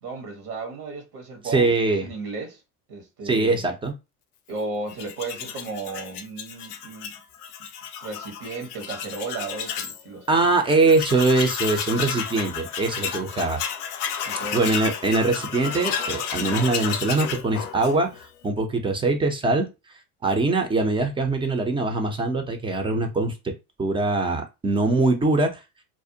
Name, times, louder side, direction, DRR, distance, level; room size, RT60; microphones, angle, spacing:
voice 1, 0.0-2.6 2.9-3.6 4.5-7.1 8.0-10.3 14.3-14.6, right 3 dB, 85° right, 1.1 m, -34 dB
voice 2, 1.5-2.1 3.3-3.9 10.3-13.6 14.5-19.7 20.2-23.3 23.8-25.6, right 3 dB, 15° right, 0.4 m, -22 dB
Tools, 4.9-10.0 10.4-10.5 10.7-18.3, left 8 dB, 85° left, 0.5 m, -32 dB
2.5 x 2.0 x 2.6 m
hypercardioid pair, 85°, 44 cm